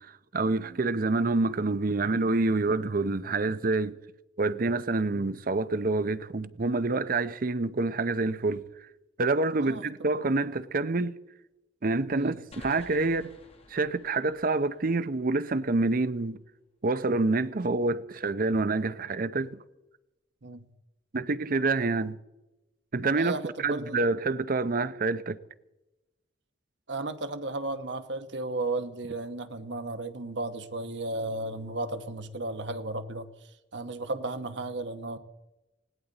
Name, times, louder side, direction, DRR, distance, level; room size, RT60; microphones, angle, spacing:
voice 1, 0.0-4.0 4.4-8.7 9.2-11.2 11.8-13.3 13.7-16.4 16.8-19.6 21.1-22.2 22.9-25.4, right 3 dB, 50° right, 0.7 m, -27 dB
voice 2, 9.6-10.1 12.2-12.4 20.4-20.7 23.2-24.0 26.9-35.2, right 2 dB, 70° right, 1.2 m, -34 dB
sound 1, 12.5-16.0, left 2 dB, 35° left, 2.0 m, -53 dB
20.5 x 17.0 x 4.0 m
head